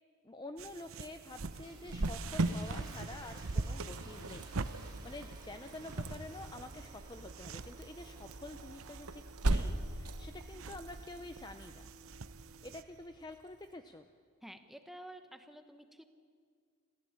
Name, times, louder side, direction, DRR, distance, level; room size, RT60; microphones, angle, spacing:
voice 1, 0.2-4.5 4.8-11.9 12.6-14.1, left 2 dB, 20° left, 7 dB, 0.6 m, -48 dB
sound 1, 0.6-12.8, right 3 dB, 65° right, 0.7 m, -45 dB
sound 2, 1.4-8.3, right 2 dB, 20° right, 2.7 m, -56 dB
Cricket, 1.9-13.3, right 2 dB, 90° right, 1.2 m, -39 dB
voice 2, 14.4-16.0, right 1 dB, ahead, 7 dB, 1.1 m, -51 dB
28.0 x 15.0 x 8.8 m, 2.1 s
head